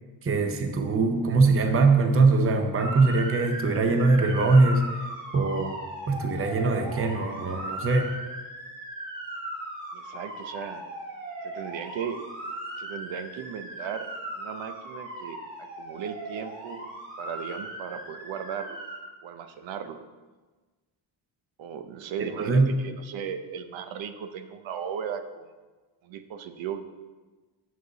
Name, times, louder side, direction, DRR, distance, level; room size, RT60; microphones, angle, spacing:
voice 1, 0.2-5.0 5.3-5.7 6.1-8.1 22.2-22.7, right 3 dB, 30° right, 5 dB, 0.7 m, -22 dB
Motor vehicle (road) / Siren, 2.8-19.0, right 1 dB, 50° right, 3.1 m, -38 dB
voice 2, 9.9-10.8 11.4-12.2 12.8-14.1 14.4-16.9 17.2-18.8 19.2-20.0 21.6-25.5 26.0-26.8, right 8 dB, 85° right, 9 dB, 0.8 m, -36 dB
9.3 x 6.6 x 4.0 m, 1.3 s
wide cardioid pair, 165°, 45 cm